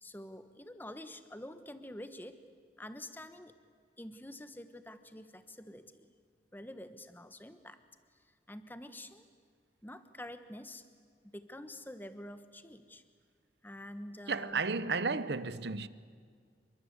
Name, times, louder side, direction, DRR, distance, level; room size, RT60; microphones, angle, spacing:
voice 1, 0.0-2.4 2.8-3.5 4.0-6.1 6.5-7.8 8.2-9.2 9.8-10.9 11.2-13.0 13.6-14.6, left 1 dB, 10° left, 1.2 m, -47 dB
voice 2, 14.3-15.9, right 4 dB, 70° right, 1.0 m, -33 dB
27.5 x 23.5 x 8.2 m
head